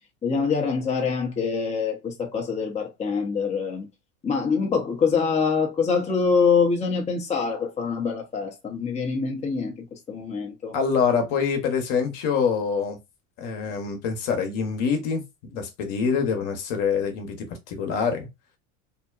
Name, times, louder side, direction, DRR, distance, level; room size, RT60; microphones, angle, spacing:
voice 1, 0.2-3.9 4.2-10.8, left 5 dB, 15° left, 0.7 m, -25 dB
voice 2, 10.7-13.0 13.4-15.2 15.5-18.3, left 6 dB, 60° left, 0.9 m, -25 dB
2.7 x 2.1 x 2.3 m
hypercardioid pair, 85°, 39 cm